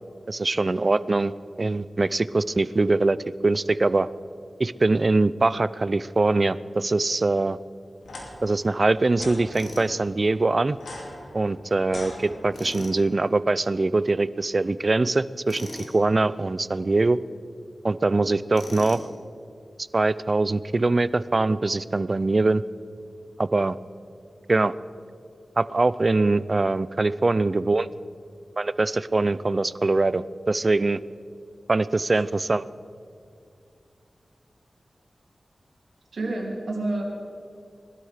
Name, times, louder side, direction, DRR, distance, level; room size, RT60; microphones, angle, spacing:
voice 1, 0.3-1.3 1.6-3.2 3.4-4.1 4.6-7.6 8.4-10.8 11.3-17.2 17.8-19.0 19.9-22.6 23.4-23.8 24.5-24.7 25.6-27.9 28.6-31.0 31.7-32.7, right 3 dB, 45° right, 17 dB, 0.5 m, -23 dB
sound 1, 8.0-8.3 9.1-9.4 10.7-12.8, left 2 dB, 90° left, 2.6 m, -40 dB
Tools, 9.5-9.9 12.5-13.0 15.5-16.0 18.5-19.1, left 2 dB, 60° left, 2.5 m, -39 dB
voice 2, 36.1-37.0, right 2 dB, 85° right, 0 dB, 2.8 m, -28 dB
20.0 x 12.5 x 5.0 m, 2.4 s
cardioid pair, 55°, 0 cm